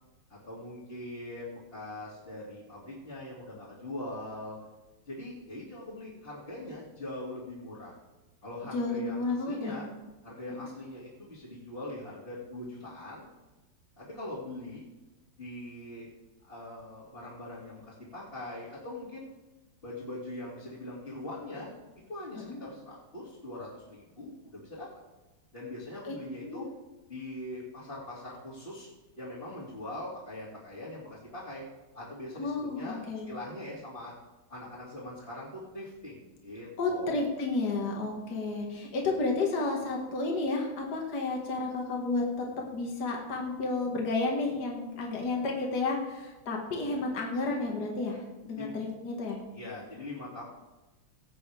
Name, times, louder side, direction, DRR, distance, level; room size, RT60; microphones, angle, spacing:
voice 1, 0.3-4.6 5.1-7.9 8.4-9.9 10.2-13.3 14.0-14.8 15.4-16.1 16.4-19.3 19.8-21.7 22.1-24.9 25.5-26.7 27.0-31.6 31.9-34.1 34.5-37.2 48.6-48.7 49.5-50.4, left 1 dB, 25° left, -10 dB, 2.8 m, -42 dB
voice 2, 8.7-9.8 10.6-10.7 22.5-22.6 26.0-26.1 26.4-26.7 32.4-33.3 36.8-42.5 42.7-49.4, left 3 dB, 50° left, 0 dB, 2.3 m, -31 dB
18.0 x 8.6 x 3.5 m, 1.1 s
omnidirectional pair, 2.3 m